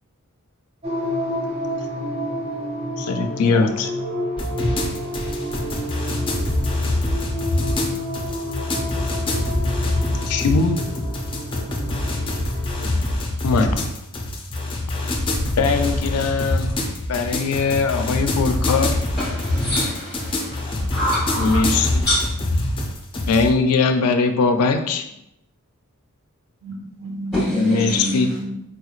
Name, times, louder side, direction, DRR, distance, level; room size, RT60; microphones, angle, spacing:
sound 1, 0.8-12.9, equal, 30° right, 0.6 m, -30 dB
voice 1, 3.0-3.9 10.3-10.8 13.4-13.9 15.6-16.7 17.1-19.0 21.4-22.1 23.3-25.1 27.5-28.3, left 4 dB, 85° left, 0.4 m, -20 dB
sound 2, 4.4-23.5, left 1 dB, 25° left, 0.5 m, -24 dB
voice 2, 19.2-22.2 27.3-28.2, left 1 dB, ahead, 1.0 m, -26 dB
voice 3, 26.6-28.5, equal, 70° right, 1.0 m, -29 dB
4.1 x 3.0 x 2.4 m
head